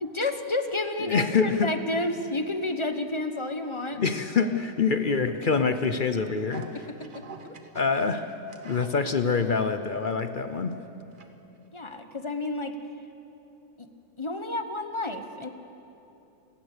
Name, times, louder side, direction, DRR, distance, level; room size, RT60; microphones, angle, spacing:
voice 1, 0.0-4.0 7.1-7.2 11.7-12.8 13.8-13.9 14.2-15.5, left 2 dB, 25° left, 8 dB, 0.8 m, -30 dB
voice 2, 1.0-1.7 3.9-6.8 7.7-8.3 8.6-10.8, left 5 dB, 55° left, 9 dB, 0.5 m, -25 dB
sound 1, 6.5-9.5 10.0-10.1 10.6-11.3 11.6-11.7, right 4 dB, 35° right, 1.0 m, -46 dB
27.5 x 18.0 x 6.7 m, 2.9 s
omnidirectional pair, 1.9 m